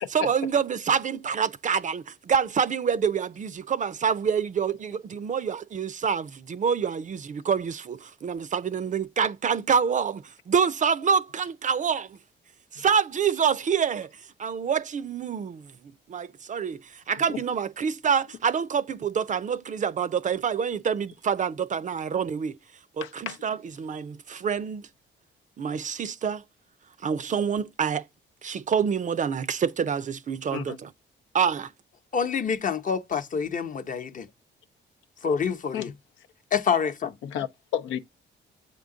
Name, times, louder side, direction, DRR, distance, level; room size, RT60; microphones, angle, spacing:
voice 1, 0.1-12.2 12.7-14.1 14.4-15.7 16.1-22.6 23.0-24.9 25.6-26.4 27.0-28.0 28.4-30.9 31.3-31.7, right 7 dB, 40° right, 0.5 m, -27 dB
voice 2, 23.0-23.4 30.5-30.8 35.7-35.9 37.2-38.0, left 9 dB, 85° left, 0.6 m, -32 dB
voice 3, 32.1-34.3 35.2-35.9 36.5-37.1, left 6 dB, 40° left, 0.8 m, -27 dB
7.8 x 3.7 x 3.7 m
cardioid pair, 90°, 20 cm